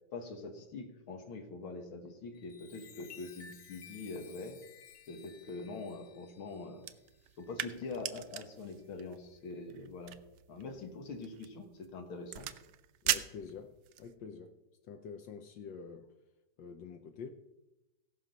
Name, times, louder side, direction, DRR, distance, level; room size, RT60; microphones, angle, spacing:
voice 1, 0.1-4.6 5.1-6.8 7.4-10.2 10.5-12.5, left 3 dB, 85° left, 2.3 m, -44 dB
Chime, 2.2-8.2 8.8-9.1, left 7 dB, 50° left, 1.2 m, -56 dB
sound 1, 6.8-14.1, right 12 dB, 70° right, 1.1 m, -41 dB
voice 2, 13.0-14.6 14.9-16.1 16.6-17.3, left 6 dB, 70° left, 1.4 m, -47 dB
16.5 x 6.2 x 5.4 m
omnidirectional pair, 2.2 m